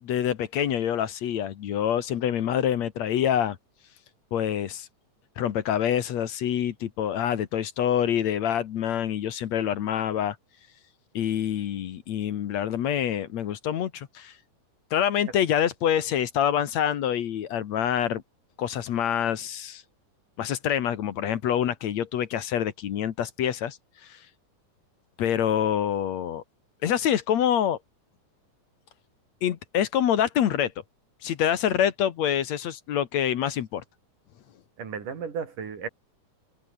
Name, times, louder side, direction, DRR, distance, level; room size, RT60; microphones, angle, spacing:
voice 1, 0.0-3.6 4.3-4.9 5.4-10.4 11.1-14.3 14.9-18.2 18.6-19.8 20.4-23.8 24.1-24.2 25.2-26.4 26.8-27.8 29.4-30.7 31.2-33.8, left 10 dB, 65° left, 2.5 m, -26 dB
voice 2, 34.8-35.9, right 6 dB, 80° right, 5.2 m, -34 dB
omnidirectional pair, 3.6 m